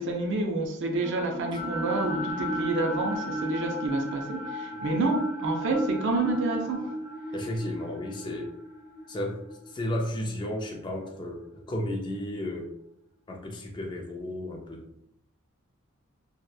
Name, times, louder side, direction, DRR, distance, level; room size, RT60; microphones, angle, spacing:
voice 1, 0.0-7.0, right 2 dB, 60° right, 3 dB, 0.4 m, -29 dB
sound 1, 1.0-11.2, equal, 80° right, 1.4 m, -35 dB
voice 2, 7.3-8.5 9.1-12.7 13.3-14.8, left 1 dB, 20° left, 1 dB, 0.3 m, -33 dB
2.7 x 2.1 x 2.3 m, 0.76 s
head